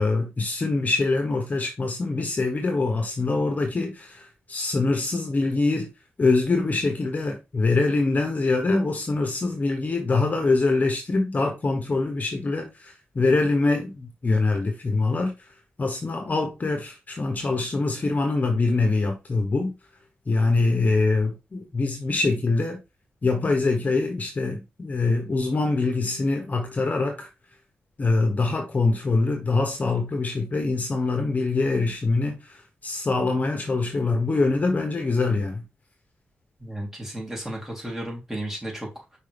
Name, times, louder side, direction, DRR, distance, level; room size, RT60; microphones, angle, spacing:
voice 1, 0.0-5.9 6.2-15.3 15.8-19.7 20.3-22.8 23.2-27.3 28.0-35.6, left 3 dB, 40° left, 1.3 m, -24 dB
voice 2, 36.6-39.2, right 1 dB, 10° right, 3.6 m, -34 dB
5.6 x 4.8 x 3.5 m
cardioid pair, 90°, 4 cm